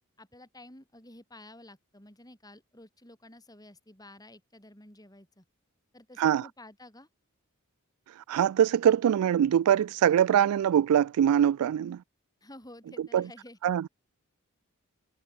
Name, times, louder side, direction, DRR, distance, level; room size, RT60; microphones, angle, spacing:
voice 1, 0.2-5.4 5.9-7.1 12.4-13.7, left 1 dB, 15° left, 7.6 m, -51 dB
voice 2, 8.3-12.0 13.1-13.2 13.6-13.8, right 9 dB, 80° right, 0.3 m, -23 dB
head